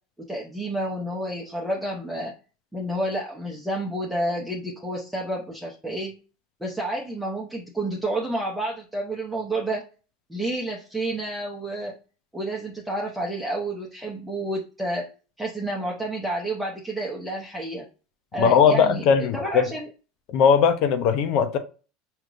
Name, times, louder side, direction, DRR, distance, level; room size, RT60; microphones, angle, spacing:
voice 1, 0.3-2.3 2.7-6.1 6.6-9.8 10.3-11.9 12.3-15.1 15.4-17.9 18.3-19.1 19.3-19.9, right 1 dB, 5° right, 0.9 m, -30 dB
voice 2, 18.4-19.6 20.3-21.6, left 7 dB, 60° left, 0.7 m, -19 dB
5.0 x 3.0 x 2.5 m
supercardioid pair, 105°, 0 cm